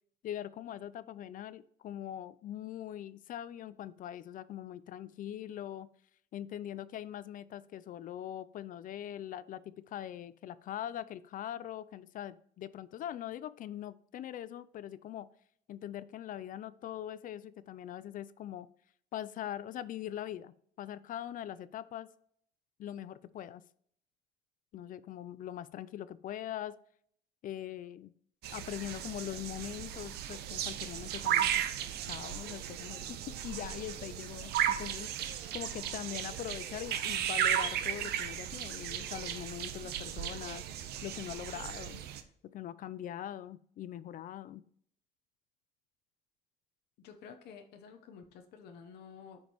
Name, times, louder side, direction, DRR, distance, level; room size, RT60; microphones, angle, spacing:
voice 1, 0.2-5.9 6.3-15.3 15.7-18.7 19.1-22.1 22.8-23.6 24.7-26.8 27.4-28.1 28.5-31.6 32.1-35.1 35.5-40.6 41.0-42.0 42.5-44.6, left 11 dB, 55° left, 17 dB, 0.4 m, -42 dB
sound 1, 28.4-42.2, right 10 dB, 75° right, 0.8 m, -35 dB
voice 2, 47.0-49.4, left 6 dB, 75° left, 5 dB, 0.9 m, -51 dB
9.2 x 5.3 x 3.0 m, 0.64 s
cardioid pair, 110°, 17 cm